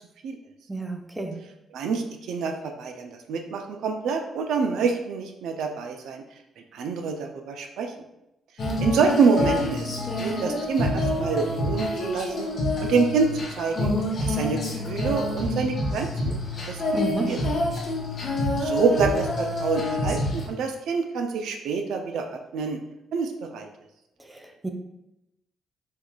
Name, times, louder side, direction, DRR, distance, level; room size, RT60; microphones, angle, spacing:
voice 1, 0.7-1.4 16.9-17.3 24.2-24.7, right 2 dB, 10° right, 4 dB, 0.5 m, -30 dB
voice 2, 1.7-6.2 6.6-7.9 8.8-12.5 12.8-13.3 13.6-13.9 14.2-17.4 18.6-22.8 23.1-23.7, right 5 dB, 80° right, 4 dB, 0.3 m, -27 dB
Female singing, 8.6-20.5, left 1 dB, 50° left, 0.9 m, -27 dB
4.5 x 2.4 x 2.2 m, 0.87 s
cardioid pair, 90°, 0 cm